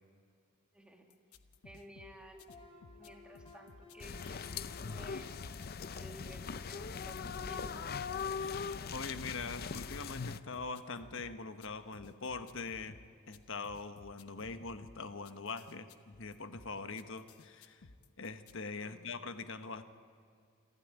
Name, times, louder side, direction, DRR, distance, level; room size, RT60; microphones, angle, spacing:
voice 1, 0.7-1.1 1.6-5.3 6.0-7.9 18.8-19.2, equal, 5° right, 2 dB, 2.0 m, -54 dB
sound 1, 1.1-18.6, left 3 dB, 85° left, 1.0 m, -58 dB
sound 2, 2.3-11.1, left 3 dB, 25° left, 4.5 m, -60 dB
sound 3, 4.0-10.4, left 6 dB, 45° left, 0.5 m, -40 dB
voice 2, 8.3-13.0 13.3-17.9 18.2-19.8, left 4 dB, 60° left, 9 dB, 1.2 m, -43 dB
27.0 x 13.0 x 9.0 m, 2.3 s
head